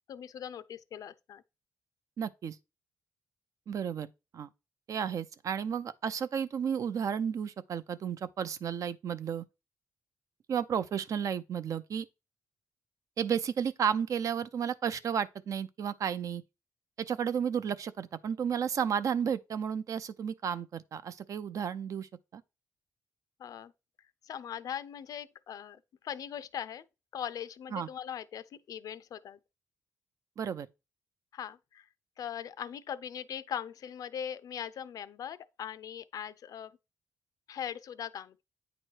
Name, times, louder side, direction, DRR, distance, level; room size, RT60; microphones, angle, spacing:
voice 1, 0.1-1.4 23.4-23.7 24.2-26.8 27.1-29.4 31.3-31.9 32.2-36.8 37.5-38.4, left 9 dB, 65° left, 0.4 m, -40 dB
voice 2, 2.2-2.6 3.7-4.1 4.3-4.5 4.9-9.4 10.5-12.1 13.2-16.4 17.1-22.4 27.7-27.9 30.4-30.7, right 7 dB, 60° right, 0.5 m, -32 dB
8.9 x 3.0 x 4.5 m
cardioid pair, 110°, 7 cm